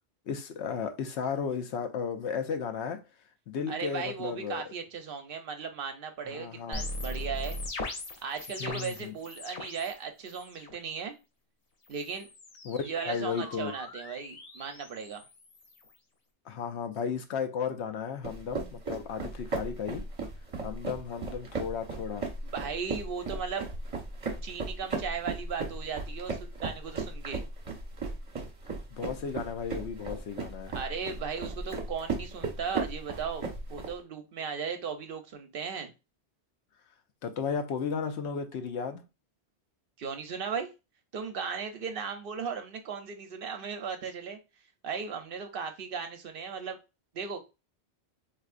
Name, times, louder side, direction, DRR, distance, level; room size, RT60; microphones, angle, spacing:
voice 1, 0.3-3.0 3.5-4.6 6.2-6.8 8.6-9.1 12.6-13.7 16.5-20.0 20.6-22.3 28.9-30.7 37.2-39.0, left 6 dB, 80° left, 0.9 m, -34 dB
voice 2, 3.7-7.6 8.2-11.1 11.9-12.3 12.9-15.2 22.4-23.6 24.4-27.4 30.7-35.9 40.0-40.7 41.1-44.4 44.8-46.8 47.1-47.4, right 6 dB, 60° right, 0.7 m, -36 dB
sound 1, 6.7-10.0 10.3-10.8 11.8-16.0, left 2 dB, 45° left, 0.6 m, -40 dB
sound 2, 18.2-33.9, right 3 dB, 35° right, 0.9 m, -36 dB
4.3 x 2.5 x 2.4 m
omnidirectional pair, 1.1 m